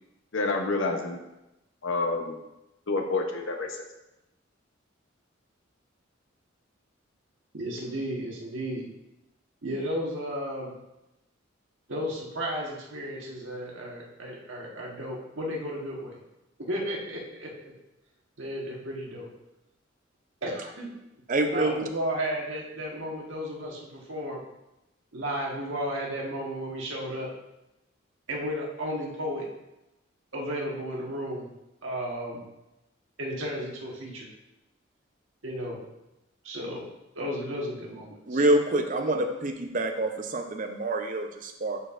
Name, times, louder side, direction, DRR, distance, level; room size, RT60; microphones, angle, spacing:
voice 1, 0.3-1.2 1.8-2.4 2.9-3.8, left 3 dB, 70° left, 3 dB, 0.8 m, -28 dB
voice 2, 7.5-8.8 9.6-10.7 11.9-16.2 16.7-17.7 18.4-19.3 20.4-20.9 21.5-24.4 25.1-27.3 28.3-29.5 30.3-31.5 31.8-32.4 33.2-34.3 35.4-35.8 36.4-36.9 37.1-38.4, equal, 75° right, -2 dB, 1.5 m, -33 dB
voice 3, 21.3-21.7 38.3-41.8, right 1 dB, 40° right, 5 dB, 0.6 m, -26 dB
10.5 x 4.4 x 2.5 m, 0.94 s
head